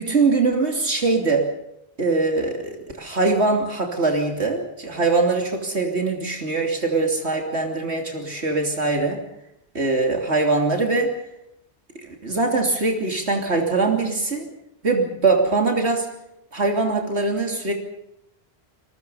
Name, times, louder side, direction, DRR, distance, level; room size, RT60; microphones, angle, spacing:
voice 1, 0.0-1.5 2.0-9.2 9.7-11.1 12.0-14.5 14.8-16.1 16.5-17.7, right 3 dB, 85° right, 2 dB, 3.3 m, -22 dB
28.0 x 21.5 x 5.6 m, 0.82 s
omnidirectional pair, 1.1 m